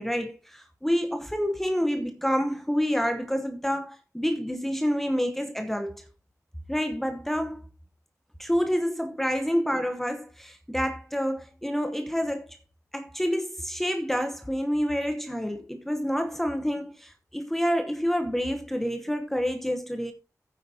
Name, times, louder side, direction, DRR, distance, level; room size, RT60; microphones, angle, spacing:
voice 1, 0.0-6.1 6.7-7.7 8.4-12.6 12.9-20.1, equal, 5° left, 1.0 m, -28 dB
13.0 x 9.2 x 2.8 m
wide cardioid pair, 115°, 6 cm